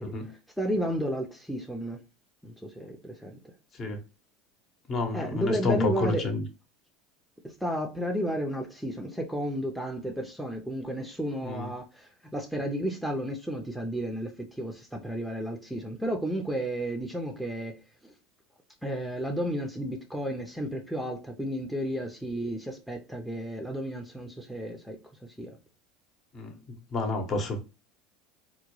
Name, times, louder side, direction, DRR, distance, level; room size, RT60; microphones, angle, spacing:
voice 1, 0.0-2.0 2.4-3.4 5.1-6.2 7.4-17.8 18.0-18.1 18.8-25.5, equal, ahead, 0.6 m, -33 dB
voice 2, 4.9-6.4 11.4-11.7 26.3-26.5 26.9-27.6, left 2 dB, 40° left, 0.9 m, -29 dB
3.6 x 2.2 x 3.0 m
supercardioid pair, 105°, 0 cm